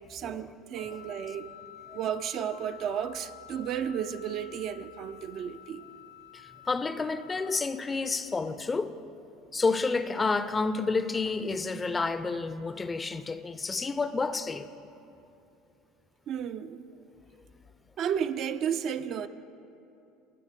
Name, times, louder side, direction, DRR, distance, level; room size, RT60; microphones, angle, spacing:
voice 1, 0.1-1.5 1.9-5.8 16.3-16.9 18.0-19.3, right 8 dB, 50° right, 0.4 m, -33 dB
Wind instrument woodwind instrument, 0.7-7.7, left 11 dB, 85° left, 0.3 m, -50 dB
voice 2, 6.3-8.9 9.5-14.7, left 4 dB, 25° left, 0.4 m, -30 dB
17.5 x 6.2 x 3.7 m
hypercardioid pair, 75°, 0 cm